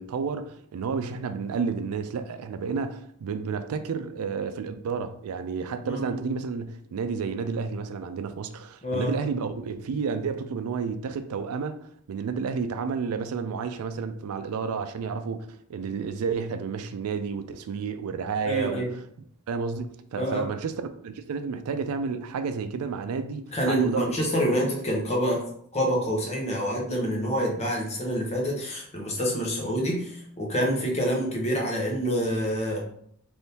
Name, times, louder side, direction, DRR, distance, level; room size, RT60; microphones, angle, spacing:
voice 1, 0.0-11.8 12.1-18.9 19.5-24.1, right 5 dB, 75° right, 0.3 m, -31 dB
voice 2, 5.8-6.2 8.8-9.1 18.4-18.9 20.2-20.5 23.5-25.4 25.7-32.8, equal, 30° left, 0.8 m, -27 dB
3.5 x 2.6 x 2.8 m
head